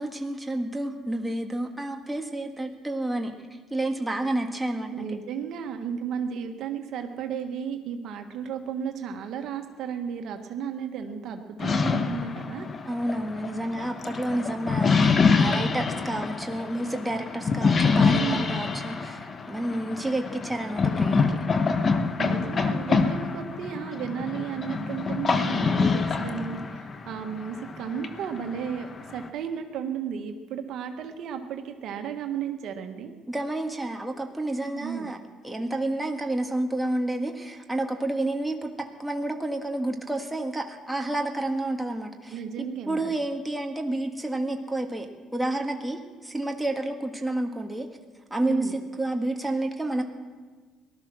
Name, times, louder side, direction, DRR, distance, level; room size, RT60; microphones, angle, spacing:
voice 1, 0.0-3.3 3.7-4.9 12.9-21.4 33.3-35.2 35.4-38.7 39.0-45.1 45.3-47.9 48.3-50.0, right 1 dB, 5° right, 3 dB, 1.7 m, -30 dB
voice 2, 4.9-12.7 18.1-18.5 22.2-33.1 34.7-35.1 42.3-43.1 48.4-48.7, right 7 dB, 70° right, 5 dB, 1.4 m, -34 dB
sound 1, 11.6-29.3, left 5 dB, 35° left, 1.1 m, -26 dB
19.0 x 12.5 x 6.2 m, 1.4 s
cardioid pair, 95°, 0 cm